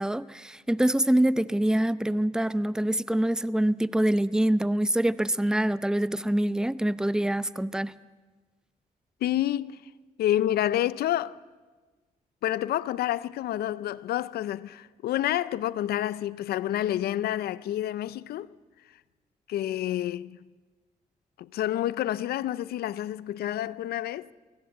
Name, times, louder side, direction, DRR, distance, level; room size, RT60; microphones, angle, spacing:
voice 1, 0.0-7.9, right 1 dB, 5° right, 0.7 m, -25 dB
voice 2, 9.2-9.8 10.2-11.4 12.4-18.5 19.5-20.5 21.4-24.3, left 12 dB, 85° left, 0.5 m, -29 dB
23.0 x 17.0 x 7.7 m
cardioid pair, 60°, 16 cm